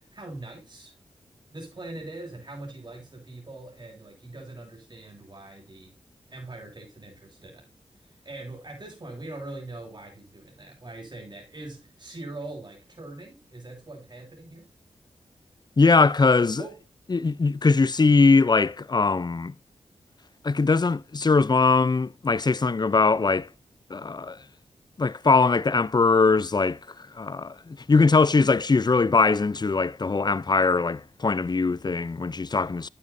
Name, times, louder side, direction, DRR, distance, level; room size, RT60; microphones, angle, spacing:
voice 1, 0.1-0.9 1.5-5.9 6.3-7.7 8.2-14.7 16.6-16.8, right 2 dB, 40° right, 7.1 m, -42 dB
voice 2, 15.8-16.6 17.1-19.5 20.4-23.5 23.9-24.4 25.0-32.9, left 4 dB, 35° left, 0.6 m, -21 dB
12.0 x 9.3 x 2.7 m
cardioid pair, 45°, 12 cm